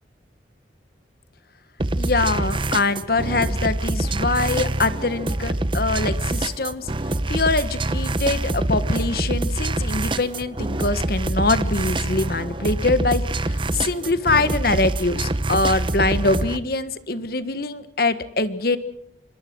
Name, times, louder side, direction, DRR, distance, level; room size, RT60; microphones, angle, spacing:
sound 1, 1.8-16.6, right 2 dB, 30° right, 0.9 m, -25 dB
voice 1, 2.0-6.9 7.3-18.8, left 3 dB, 55° left, 12 dB, 1.5 m, -23 dB
26.0 x 22.0 x 6.2 m, 0.79 s
head